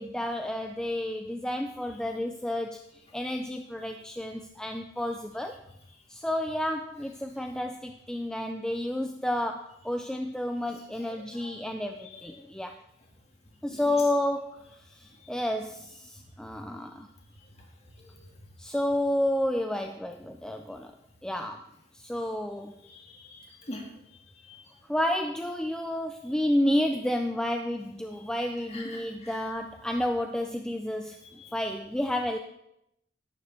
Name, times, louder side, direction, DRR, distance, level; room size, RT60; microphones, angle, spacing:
voice 1, 0.0-2.8 3.1-5.6 6.1-12.8 13.6-14.6 14.9-17.1 18.6-20.9 21.2-21.6 21.9-22.8 24.9-32.4, left 1 dB, 5° left, 5 dB, 0.3 m, -30 dB
voice 2, 22.9-23.8 24.4-24.6 28.7-29.4 31.4-31.5, left 1 dB, 30° left, 0 dB, 1.9 m, -43 dB
11.0 x 9.7 x 3.4 m, 0.83 s
head